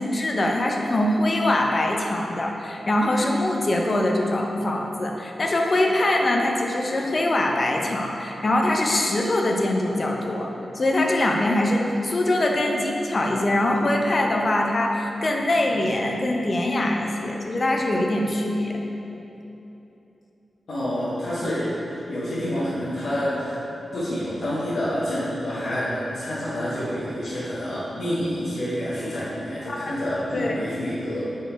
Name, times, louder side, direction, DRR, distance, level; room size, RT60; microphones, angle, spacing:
voice 1, 0.0-18.7 29.7-30.6, left 1 dB, 35° left, 1 dB, 0.6 m, -23 dB
voice 2, 20.7-23.6 23.9-31.2, equal, 75° left, -12 dB, 1.4 m, -28 dB
5.0 x 4.4 x 4.4 m, 3.0 s
wide cardioid pair, 145°, 0 cm